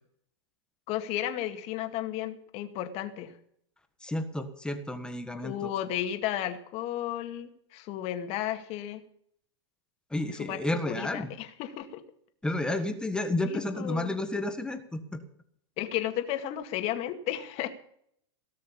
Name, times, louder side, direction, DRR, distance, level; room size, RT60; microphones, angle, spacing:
voice 1, 0.9-3.3 5.4-9.0 10.4-10.6 10.9-12.0 13.5-14.2 15.8-17.7, left 12 dB, 40° left, 7 dB, 2.1 m, -33 dB
voice 2, 4.0-5.7 10.1-11.3 12.4-15.2, left 1 dB, 5° left, 7 dB, 1.4 m, -31 dB
18.0 x 6.5 x 8.7 m, 0.66 s
hypercardioid pair, 125°, 15 cm